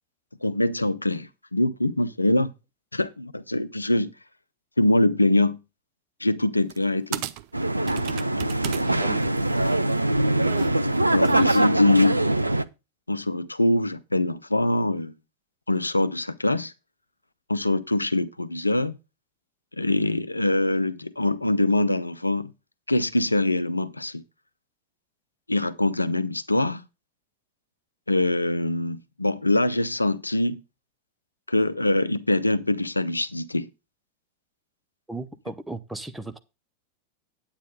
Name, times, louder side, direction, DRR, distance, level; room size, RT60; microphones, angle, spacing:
voice 1, 0.4-2.5 2.9-4.1 4.8-5.6 6.2-7.2 8.4-8.5 11.1-12.2 13.1-15.1 15.7-16.7 17.5-19.0 19.8-22.5 22.9-24.2 25.5-26.8 28.1-30.6 31.5-33.7, left 1 dB, 85° left, 0.6 m, -23 dB
sound 1, 6.7-6.8 7.1-8.8 9.2-11.7, right 13 dB, 45° right, 0.6 m, -34 dB
sound 2, 7.5-12.6, right 1 dB, 85° right, 0.4 m, -23 dB
voice 2, 8.8-9.3 35.1-36.4, right 2 dB, 5° right, 0.9 m, -36 dB
9.4 x 8.9 x 3.8 m
figure-of-eight pair, 90°, 0 cm